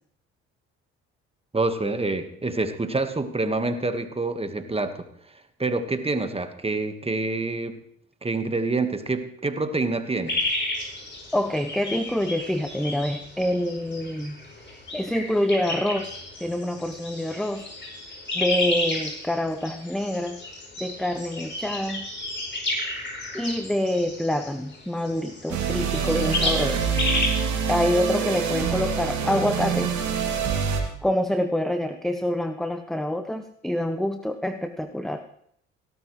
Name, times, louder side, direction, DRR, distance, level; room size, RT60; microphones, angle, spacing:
voice 1, 1.5-7.8 8.2-10.4, right 3 dB, 20° right, 9 dB, 1.5 m, -27 dB
sound 1, 10.3-27.3, left 2 dB, 35° left, 5.5 m, -32 dB
voice 2, 11.3-14.4 14.7-17.7 18.3-20.4 20.8-22.1 23.3-26.8 27.7-30.0 31.0-35.2, left 1 dB, ahead, 8 dB, 0.7 m, -26 dB
sound 2, 25.5-30.8, right 6 dB, 65° right, 2.5 m, -26 dB
17.0 x 12.5 x 3.2 m, 0.67 s
hypercardioid pair, 60°, 32 cm